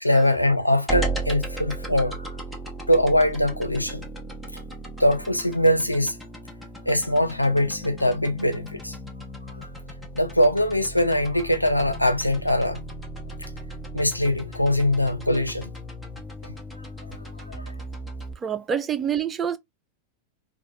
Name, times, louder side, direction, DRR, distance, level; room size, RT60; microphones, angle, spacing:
voice 1, 0.0-2.4 2.9-4.0 5.0-6.2 6.9-9.0 9.6-9.7 10.1-12.8 13.4-13.5 13.9-15.7 16.4-16.5 17.5-17.7, left 1 dB, 90° left, 0.5 m, -22 dB
sound 1, 0.9-18.3, right 1 dB, 5° left, 0.9 m, -36 dB
voice 2, 18.4-19.6, right 8 dB, 20° right, 0.4 m, -27 dB
4.4 x 2.3 x 2.5 m
figure-of-eight pair, 90°, 0 cm